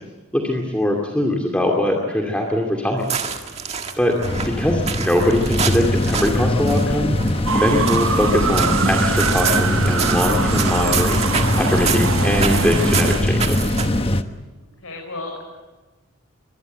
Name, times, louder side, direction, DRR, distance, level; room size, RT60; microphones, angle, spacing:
voice 1, 0.3-3.1 4.0-4.2 4.4-7.2 7.5-13.8, left 1 dB, 5° left, 0 dB, 2.3 m, -22 dB
sound 1, 3.0-14.1, right 6 dB, 30° right, 1.8 m, -28 dB
sound 2, 4.2-14.2, left 1 dB, 25° left, 1.1 m, -21 dB
sound 3, 7.5-13.2, right 5 dB, 75° right, 1.2 m, -24 dB
voice 2, 14.6-15.4, left 3 dB, 85° left, -1 dB, 5.9 m, -34 dB
24.5 x 21.5 x 8.0 m, 1.2 s
head